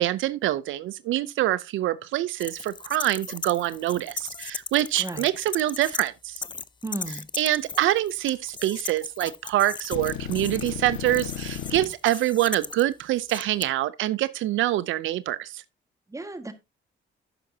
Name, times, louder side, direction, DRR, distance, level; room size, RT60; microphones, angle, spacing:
voice 1, 0.0-6.4 7.4-15.6, right 14 dB, 80° right, 0.5 m, -25 dB
sound 1, 2.4-6.1 6.4-13.6, left 5 dB, 25° left, 0.5 m, -37 dB
voice 2, 6.8-7.3 16.1-16.5, right 2 dB, 15° right, 1.6 m, -34 dB
sound 2, 9.9-11.9, left 9 dB, 90° left, 1.5 m, -34 dB
11.0 x 7.9 x 2.7 m
cardioid pair, 90°, 20 cm